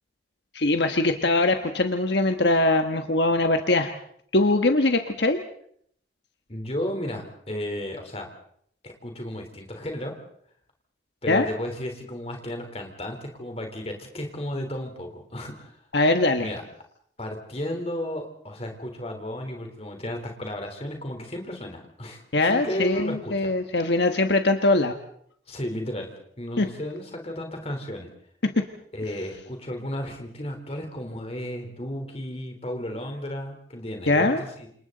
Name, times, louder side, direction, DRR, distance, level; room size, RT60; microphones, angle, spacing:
voice 1, 0.5-3.9 4.3-5.4 11.3-11.5 15.9-16.5 22.3-25.0 26.6-26.7 28.4-28.7 34.1-34.4, left 2 dB, 70° left, 6 dB, 1.3 m, -22 dB
voice 2, 6.5-8.3 8.8-10.1 11.2-15.8 16.4-16.6 17.2-22.2 22.5-23.5 25.5-26.1 26.4-28.1 28.9-34.7, left 1 dB, 35° left, 4 dB, 3.8 m, -33 dB
29.0 x 27.5 x 4.1 m, 0.65 s
head